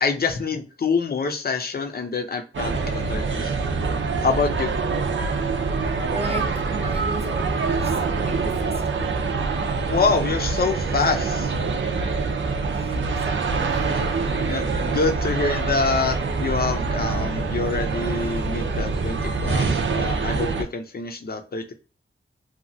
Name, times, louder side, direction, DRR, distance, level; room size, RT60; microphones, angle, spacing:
voice 1, 0.0-3.5 4.2-4.7 9.9-11.5 14.0-14.1 14.5-21.7, left 4 dB, 50° left, 4 dB, 0.6 m, -26 dB
sound 1, 2.5-20.6, right 4 dB, 65° right, 0.5 m, -25 dB
voice 2, 6.1-9.3 12.7-13.9 14.5-14.6, right 2 dB, 30° right, 4 dB, 0.7 m, -36 dB
2.9 x 2.3 x 2.6 m, 0.36 s
wide cardioid pair, 80°, 21 cm